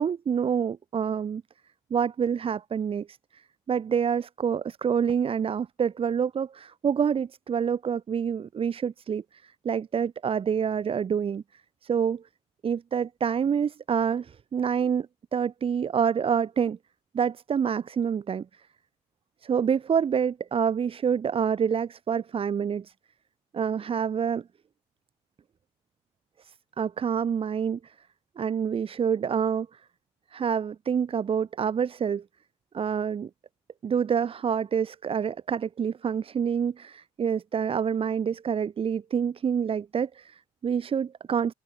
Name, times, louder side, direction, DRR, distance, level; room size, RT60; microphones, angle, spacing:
voice 1, 0.0-1.4 1.9-3.4 3.7-11.4 11.8-12.2 12.6-15.1 15.3-16.8 17.1-18.5 19.4-22.9 23.5-24.5 26.4-27.9 28.4-29.8 30.3-32.2 32.7-33.3 33.8-41.5, right 7 dB, 50° right, 2.7 m, -27 dB
open air
supercardioid pair, 75°, 12 cm